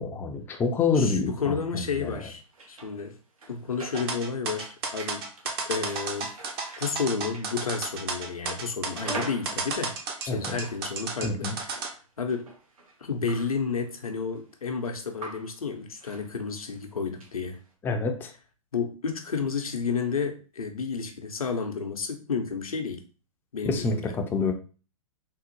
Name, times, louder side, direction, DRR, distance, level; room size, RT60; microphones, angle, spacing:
voice 1, 0.0-2.2 10.3-10.6 11.2-11.5 17.8-18.3 23.7-24.0 24.3-24.5, left 4 dB, 10° left, 4 dB, 0.4 m, -27 dB
voice 2, 0.9-2.4 2.7-3.2 3.5-5.3 5.7-6.3 6.8-9.9 10.2-12.5 13.0-17.6 18.7-23.0 23.5-24.1, left 5 dB, 85° left, 5 dB, 0.7 m, -31 dB
sound 1, 2.0-3.0 3.4-10.9 11.7-14.0 14.3-14.4 14.8-15.6 16.0-16.3 16.7-16.8 17.2-17.7, right 3 dB, 75° right, 0.9 m, -44 dB
sound 2, 4.0-11.9, right 4 dB, 45° right, 0.8 m, -32 dB
3.7 x 2.0 x 3.0 m, 0.36 s
hypercardioid pair, 120°, 18 cm